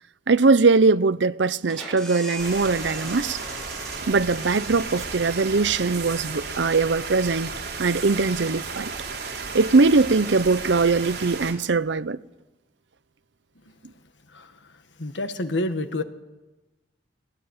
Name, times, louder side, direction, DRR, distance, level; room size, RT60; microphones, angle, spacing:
voice 1, 0.3-3.4 4.1-7.5 7.8-8.9 9.5-12.2, right 3 dB, 80° right, 0.7 m, -21 dB
sound 1, 1.6-7.1, equal, 5° left, 6.2 m, -41 dB
sound 2, 2.4-11.5, right 4 dB, 60° right, 4.5 m, -34 dB
voice 2, 15.0-16.0, left 2 dB, 85° left, 1.6 m, -28 dB
19.5 x 17.5 x 9.7 m
head